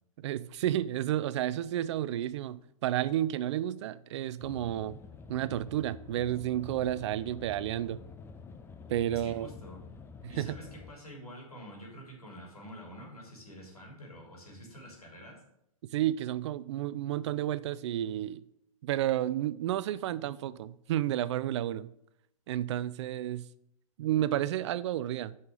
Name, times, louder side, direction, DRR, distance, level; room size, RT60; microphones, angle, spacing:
voice 1, 0.2-5.0 5.3-8.0 8.9-9.5 10.2-10.5 15.9-18.4 18.8-21.9 22.5-23.5 24.0-25.4, right 12 dB, 50° right, 0.5 m, -31 dB
sound 1, 4.4-10.9, left 4 dB, 10° left, 0.6 m, -48 dB
voice 2, 9.1-9.8 10.3-15.4, equal, 90° left, 3.6 m, -47 dB
7.9 x 5.6 x 6.5 m
figure-of-eight pair, 115°, 19 cm